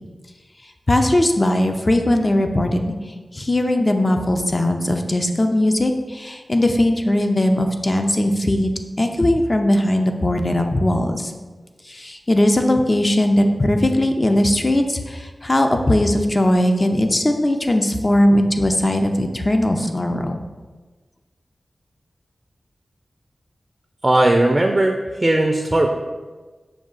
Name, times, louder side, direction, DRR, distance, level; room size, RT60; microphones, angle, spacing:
voice 1, 0.9-2.9 3.3-8.7 9.0-11.3 11.9-20.3, left 1 dB, 30° left, 5 dB, 0.4 m, -19 dB
voice 2, 24.0-25.9, right 1 dB, 30° right, 3 dB, 0.4 m, -17 dB
6.1 x 2.3 x 3.7 m, 1.3 s
wide cardioid pair, 65°, 0 cm